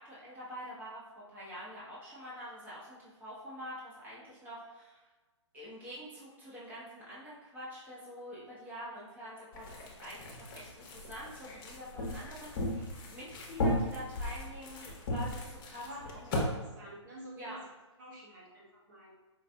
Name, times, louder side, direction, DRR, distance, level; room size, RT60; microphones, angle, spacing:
voice 1, 0.0-5.0 5.5-16.6 17.4-17.6, equal, 10° right, -8 dB, 1.0 m, -46 dB
sound 1, 9.5-16.5, left 1 dB, 45° left, 0.8 m, -36 dB
voice 2, 16.4-17.7 18.0-19.1, right 1 dB, 40° right, -4 dB, 0.8 m, -50 dB
4.7 x 2.5 x 2.2 m, 1.3 s
hypercardioid pair, 135°, 16 cm